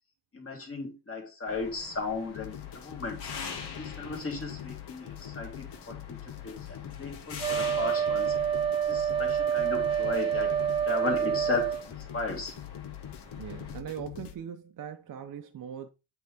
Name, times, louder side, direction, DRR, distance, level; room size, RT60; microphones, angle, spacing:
voice 1, 0.3-3.3 3.8-6.2 6.4-8.3 8.9-10.5 10.9-11.7 12.1-12.5, left 2 dB, 35° left, 2.2 m, -35 dB
sound 1, 1.5-13.8, left 5 dB, 70° left, 1.9 m, -45 dB
sound 2, 2.3-14.3, left 12 dB, 90° left, 0.8 m, -43 dB
Wind instrument woodwind instrument, 7.4-11.8, right 8 dB, 15° right, 0.8 m, -27 dB
voice 2, 13.4-15.9, right 9 dB, 50° right, 0.6 m, -40 dB
8.0 x 3.8 x 3.4 m
wide cardioid pair, 140°, 41 cm